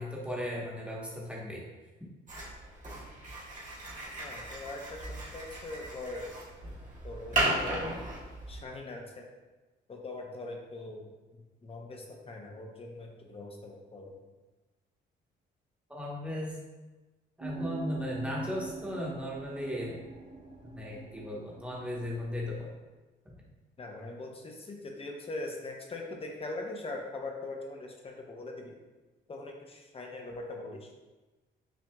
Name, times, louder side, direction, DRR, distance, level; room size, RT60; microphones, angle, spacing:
voice 1, 0.0-1.6 15.9-16.6 17.4-20.0 20.6-22.7 23.2-23.3, left 1 dB, 5° right, -4 dB, 1.1 m, -36 dB
sound 1, 2.3-8.6, right 1 dB, 40° right, 1.2 m, -36 dB
voice 2, 4.2-6.3 7.0-7.9 8.5-9.3 9.9-11.1 11.6-14.2 23.8-28.8 29.3-30.9, left 2 dB, 30° left, 1 dB, 0.7 m, -41 dB
sound 2, 17.4-22.7, right 3 dB, 60° right, 1.0 m, -43 dB
5.9 x 2.5 x 2.3 m, 1.2 s
cardioid pair, 90°, 20 cm